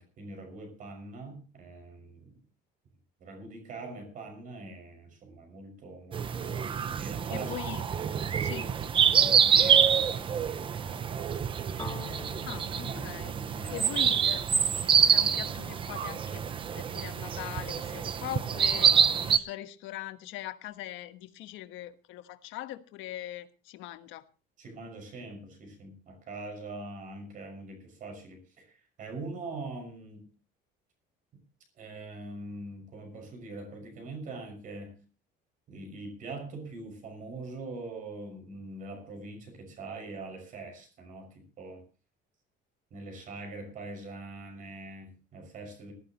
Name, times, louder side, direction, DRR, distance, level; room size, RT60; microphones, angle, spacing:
voice 1, 0.0-2.3 3.2-7.5 7.8-7.9 8.3-8.8 9.2-11.6 12.8-14.1 24.6-30.3 31.8-34.9 35.7-41.8 42.9-45.9, right 2 dB, 40° right, 6.1 m, -43 dB
sound 1, 6.1-19.4, right 7 dB, 25° right, 0.7 m, -26 dB
voice 2, 7.3-7.9 8.4-8.7 12.5-13.3 13.7-16.5 16.7-24.3, left 14 dB, 75° left, 1.4 m, -41 dB
sound 2, 11.8-15.7, left 4 dB, 15° left, 3.5 m, -47 dB
19.5 x 14.5 x 3.0 m
cardioid pair, 175°, 20 cm